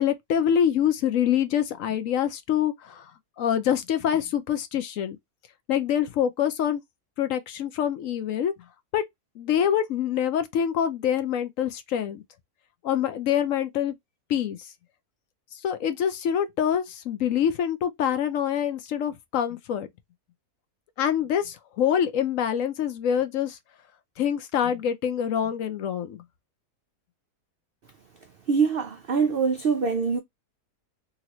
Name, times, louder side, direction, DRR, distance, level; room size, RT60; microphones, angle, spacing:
voice 1, 0.0-3.1 3.4-5.2 5.7-6.8 7.2-8.5 8.9-9.0 9.4-12.2 12.8-13.9 14.3-14.7 15.5-19.9 21.0-23.6 24.2-26.2, left 9 dB, 70° left, 0.9 m, -25 dB
voice 2, 28.5-30.2, right 5 dB, 75° right, 0.5 m, -24 dB
3.0 x 2.8 x 2.8 m
omnidirectional pair, 1.6 m